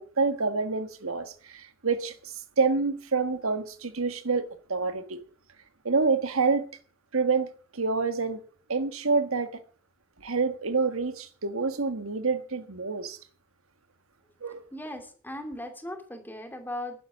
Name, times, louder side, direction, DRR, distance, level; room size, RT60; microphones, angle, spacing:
voice 1, 0.0-5.2 5.8-6.6 7.1-7.5 7.7-8.4 8.7-9.6 10.2-13.2 14.4-14.6, right 4 dB, 85° right, 1.5 m, -27 dB
voice 2, 14.7-17.0, left 1 dB, 10° left, 2.6 m, -38 dB
11.5 x 10.5 x 7.3 m
head